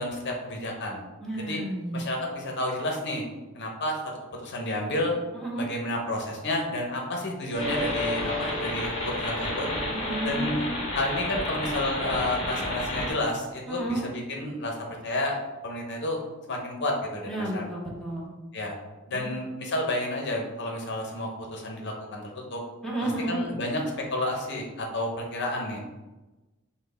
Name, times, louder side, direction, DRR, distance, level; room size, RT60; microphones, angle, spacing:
voice 1, 0.0-1.0 1.4-1.6 1.9-3.2 3.5-4.0 4.4-5.1 5.5-9.7 10.2-10.6 10.9-14.8 15.0-15.4 15.6-16.2 16.5-17.6 18.5-18.7 19.1-22.6 23.0-23.8 24.1-25.8, left 1 dB, 55° left, 0 dB, 0.8 m, -30 dB
voice 2, 1.2-2.1 5.3-5.7 9.9-10.8 13.7-14.1 17.3-18.3 19.1-19.4 22.8-23.4, right 1 dB, ahead, -5 dB, 0.7 m, -32 dB
sound 1, 7.5-11.4, left 1 dB, 40° right, 1.0 m, -35 dB
sound 2, 7.6-13.1, left 1 dB, 30° left, 1.2 m, -31 dB
5.8 x 2.1 x 3.3 m, 1.1 s
head